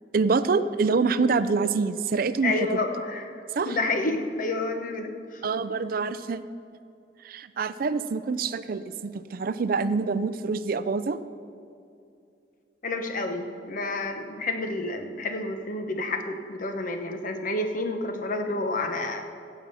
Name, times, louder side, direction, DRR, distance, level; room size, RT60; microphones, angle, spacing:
voice 1, 0.1-2.5 3.6-3.8 5.4-6.4 7.2-11.2, right 4 dB, 55° right, 14 dB, 0.4 m, -26 dB
voice 2, 2.4-3.3 3.6-5.4 12.8-19.2, left 2 dB, 50° left, 6 dB, 1.0 m, -29 dB
16.0 x 7.2 x 5.5 m, 2.6 s
head